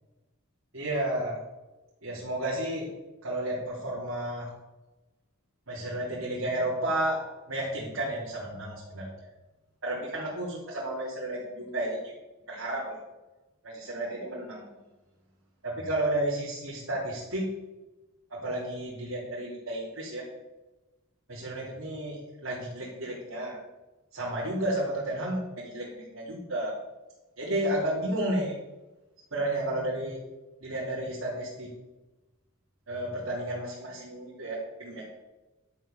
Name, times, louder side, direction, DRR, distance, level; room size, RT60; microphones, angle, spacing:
voice 1, 0.7-1.4 2.0-2.9 3.2-4.5 5.7-7.2 7.5-9.3 9.8-12.0 12.5-13.0 13.6-14.7 15.6-17.5 18.3-20.2 21.3-23.6 24.1-26.7 27.4-28.5 29.3-30.2 30.6-31.7 32.9-35.0, right 1 dB, 75° right, -7 dB, 3.3 m, -32 dB
11.5 x 5.7 x 6.7 m, 1.1 s
head